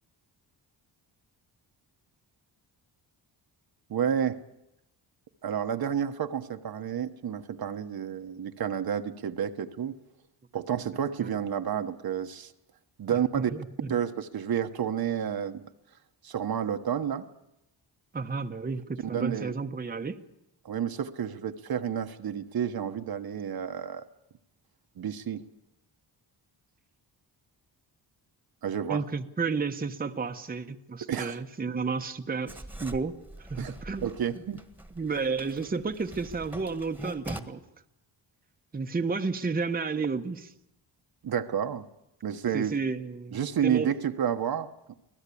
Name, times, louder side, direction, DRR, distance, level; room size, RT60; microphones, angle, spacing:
voice 1, 3.9-4.4 5.4-10.0 10.5-12.5 13.0-13.5 13.9-15.6 16.2-17.3 19.1-19.5 20.6-24.0 25.0-25.4 28.6-29.0 31.1-31.4 33.6-33.7 34.0-34.6 41.2-41.8 42.2-42.7 43.3-45.0, right 8 dB, 55° right, 7 dB, 1.2 m, -30 dB
voice 2, 13.4-13.9 18.1-20.2 28.9-33.2 33.5-34.1 34.9-37.6 38.7-40.5 42.5-43.9, right 4 dB, 20° right, 6 dB, 1.0 m, -32 dB
Writing, 32.5-37.4, right 1 dB, 5° right, 1.6 m, -43 dB
24.5 x 17.0 x 8.5 m, 0.87 s
cardioid pair, 105°, 44 cm